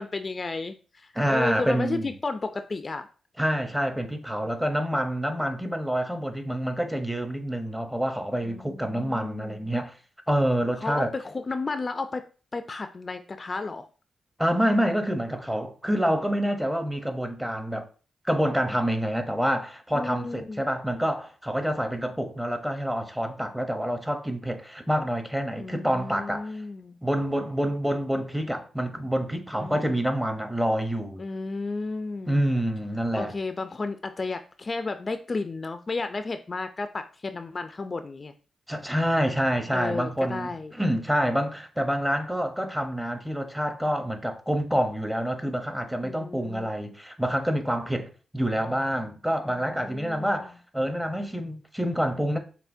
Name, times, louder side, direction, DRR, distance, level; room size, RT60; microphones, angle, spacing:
voice 1, 0.0-3.1 8.4-9.7 10.8-12.2 12.5-13.9 19.9-20.6 25.6-27.0 29.5-30.0 31.2-32.4 33.1-38.3 39.7-40.7 46.0-46.7 49.5-50.4, left 3 dB, 40° left, 0.3 m, -33 dB
voice 2, 1.1-2.1 3.4-9.9 10.3-11.1 14.4-17.9 18.2-26.6 27.0-31.2 32.3-33.3 38.7-52.4, equal, 5° right, 0.7 m, -27 dB
5.5 x 2.2 x 2.6 m
cardioid pair, 55°, 0 cm